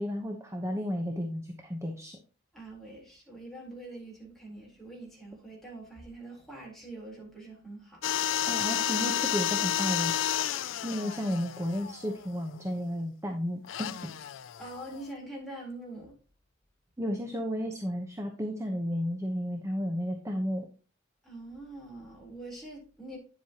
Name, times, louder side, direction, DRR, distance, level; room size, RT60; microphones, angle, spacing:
voice 1, 0.0-2.2 8.4-10.5 10.8-14.1 17.0-20.7, equal, 15° right, 3 dB, 1.0 m, -33 dB
voice 2, 2.5-8.5 14.6-16.2 21.2-23.2, right 2 dB, ahead, -3 dB, 3.9 m, -44 dB
sound 1, 8.0-12.6 13.6-15.1, left 11 dB, 80° left, 0.4 m, -31 dB
9.9 x 7.7 x 2.9 m, 0.37 s
head